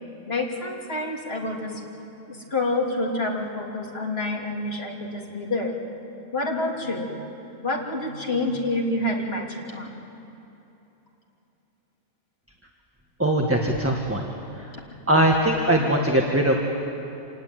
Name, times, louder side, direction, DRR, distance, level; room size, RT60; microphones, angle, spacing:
voice 1, 0.3-1.8 2.3-5.8 6.3-7.1 7.6-10.0, left 2 dB, 45° left, -1 dB, 3.3 m, -28 dB
voice 2, 13.2-14.3 14.6-14.7 15.1-16.6, right 1 dB, 10° right, 0 dB, 1.5 m, -21 dB
27.0 x 19.0 x 9.1 m, 3.0 s
omnidirectional pair, 1.4 m